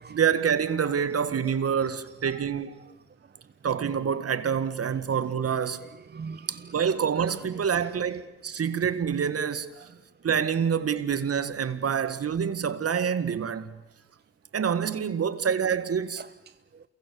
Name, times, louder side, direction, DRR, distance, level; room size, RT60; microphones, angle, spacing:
voice 1, 0.1-2.7 3.6-5.8 6.5-9.7 10.2-13.7 14.5-16.2, right 7 dB, 50° right, 1.9 m, -27 dB
voice 2, 5.9-6.8 7.6-8.0 9.8-9.9 16.2-16.8, right 5 dB, 35° right, 0.8 m, -43 dB
28.0 x 23.0 x 7.0 m
supercardioid pair, 60°, 30 cm